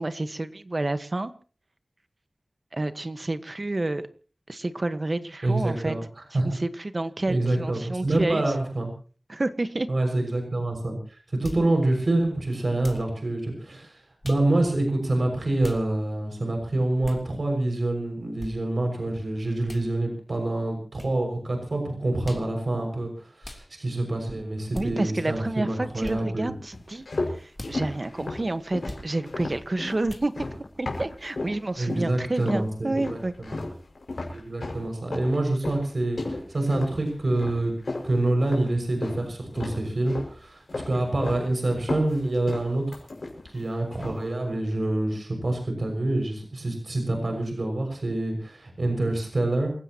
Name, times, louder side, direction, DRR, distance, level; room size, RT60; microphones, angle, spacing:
voice 1, 0.0-1.3 2.7-4.1 4.5-6.0 6.3-8.4 9.3-9.9 24.7-27.0 27.3-30.3 30.8-33.3, right 2 dB, 50° right, 11 dB, 1.4 m, -29 dB
voice 2, 5.4-6.0 6.3-6.5 7.3-8.9 9.9-26.5 31.8-33.2 33.4-33.6 34.3-37.7 38.0-43.0 43.5-49.7, right 2 dB, 70° right, 4 dB, 6.2 m, -26 dB
sound 1, 11.4-11.7 12.8-13.1 14.2-14.5 15.6-15.8 17.0-17.2 18.4-18.5 19.7-19.9 21.0-21.1 22.2-22.5 23.4-23.7 24.7-24.9 26.0-26.2 27.5-27.8 28.8-29.1 30.1-30.3, left 1 dB, 30° left, 3.4 m, -39 dB
sound 2, 26.7-31.6 31.9-32.7 33.0-39.2 39.5-40.4 40.7-41.5 41.7-43.6 43.9-44.3, left 2 dB, 85° left, 5.8 m, -34 dB
28.5 x 16.0 x 3.0 m, 0.39 s
wide cardioid pair, 55°, 0 cm